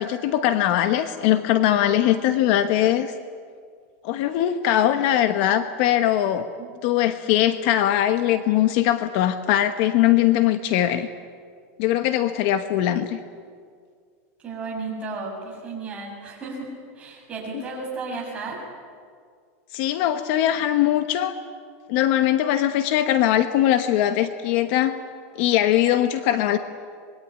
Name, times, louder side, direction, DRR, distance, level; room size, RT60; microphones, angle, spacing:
voice 1, 0.0-3.1 4.0-6.5 6.8-11.1 11.8-13.2 17.5-17.6 19.7-21.3 21.9-25.0 25.3-26.6, left 12 dB, 45° left, 10 dB, 1.1 m, -21 dB
voice 2, 14.4-18.6, right 3 dB, 15° right, -3 dB, 6.9 m, -34 dB
26.0 x 21.5 x 9.9 m, 2.1 s
supercardioid pair, 170°, 8 cm